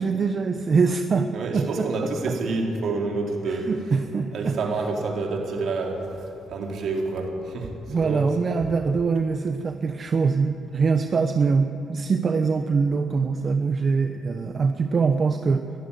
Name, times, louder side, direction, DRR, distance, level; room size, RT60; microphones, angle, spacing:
voice 1, 0.0-1.3 1.5-1.9 2.3-2.4 3.5-4.6 7.9-15.7, right 5 dB, 45° right, 7 dB, 1.0 m, -23 dB
voice 2, 1.3-3.7 4.3-6.0 6.5-7.7 8.0-8.3, right 3 dB, 65° right, 1 dB, 4.0 m, -28 dB
21.0 x 13.5 x 9.9 m, 2.6 s
cardioid pair, 90°, 0 cm